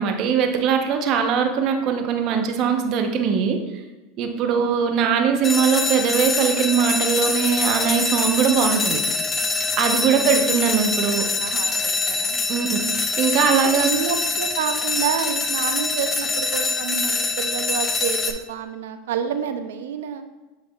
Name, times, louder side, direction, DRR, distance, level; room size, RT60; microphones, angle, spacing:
voice 1, 0.0-3.6 4.2-9.0 9.8-11.3 12.5-12.7 13.2-13.9, right 7 dB, 50° right, 5 dB, 0.9 m, -21 dB
voice 2, 4.5-4.9 10.0-10.3 10.9-11.1 11.4-12.4 13.5-20.2, right 7 dB, 85° right, 8 dB, 0.5 m, -29 dB
sound 1, 5.4-18.3, left 3 dB, 20° left, 0.6 m, -24 dB
8.2 x 5.0 x 2.4 m, 1.1 s
hypercardioid pair, 105°, 0 cm